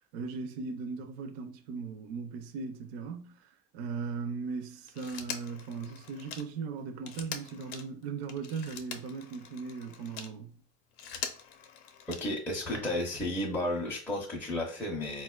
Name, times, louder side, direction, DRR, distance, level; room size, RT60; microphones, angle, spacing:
voice 1, 0.1-10.5, right 5 dB, 50° right, 0.4 m, -38 dB
Telephone, 4.9-10.4 10.8-12.5 13.8-13.9, left 7 dB, 60° left, 0.5 m, -43 dB
voice 2, 12.1-15.2, left 1 dB, 5° left, 0.4 m, -33 dB
4.0 x 2.2 x 2.2 m
supercardioid pair, 150°, 30 cm